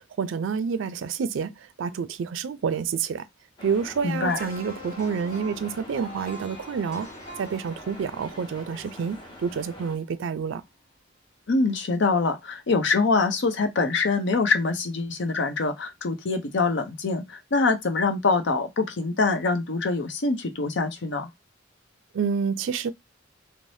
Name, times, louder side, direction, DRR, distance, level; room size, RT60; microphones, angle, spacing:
voice 1, 0.0-3.3 3.6-7.1 7.4-10.6 22.1-22.9, right 6 dB, 80° right, 0.4 m, -28 dB
sound 1, 3.6-10.0, left 1 dB, 25° left, 0.8 m, -45 dB
voice 2, 4.0-4.4 11.5-21.3, left 3 dB, 65° left, 0.6 m, -24 dB
sound 2, 4.2-10.3 10.6-10.8, left 1 dB, 40° left, 1.4 m, -45 dB
2.6 x 2.0 x 3.2 m
head